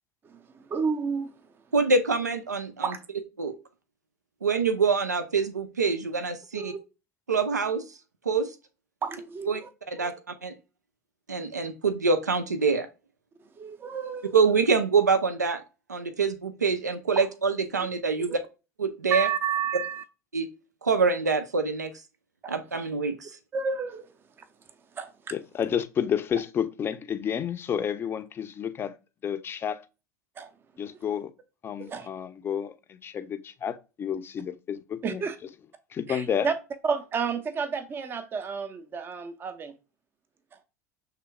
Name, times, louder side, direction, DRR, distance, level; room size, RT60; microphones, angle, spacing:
voice 1, 0.7-1.3 2.8-3.0 6.5-6.8 9.0-9.7 10.0-10.1 13.6-14.3 18.3-18.4 19.1-20.0 22.4-22.6 23.5-24.1 25.0-25.1 30.4-30.5 31.8-32.1 35.0-35.4 36.1-36.5 36.8-39.7, right 6 dB, 25° right, 0.5 m, -30 dB
voice 2, 1.7-2.9 3.4-3.5 4.4-6.7 7.3-7.8 8.3-8.5 9.5-9.6 9.9-10.1 10.4-10.5 11.3-12.9 14.3-15.6 15.9-18.4 18.8-19.3 20.3-20.5 20.8-21.9 22.5-23.3, right 4 dB, 85° right, 0.5 m, -25 dB
voice 3, 25.3-29.0 29.2-29.8 30.8-31.3 31.6-35.2 35.9-36.5, left 8 dB, 25° left, 0.5 m, -30 dB
5.8 x 3.3 x 2.2 m
figure-of-eight pair, 80°, 9 cm